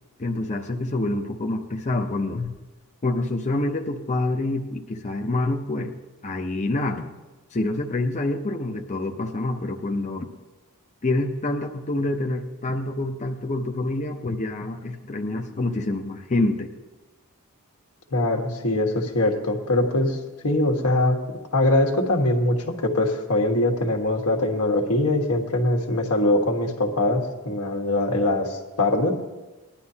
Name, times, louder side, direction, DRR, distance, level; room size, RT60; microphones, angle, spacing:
voice 1, 0.2-2.5 3.0-5.9 6.2-7.1 7.5-10.3 11.0-16.7, left 2 dB, 35° left, 3 dB, 0.7 m, -27 dB
voice 2, 18.1-20.2 20.4-21.2 21.5-29.1, left 1 dB, 85° left, 2 dB, 1.6 m, -22 dB
20.0 x 11.5 x 2.8 m, 1.1 s
head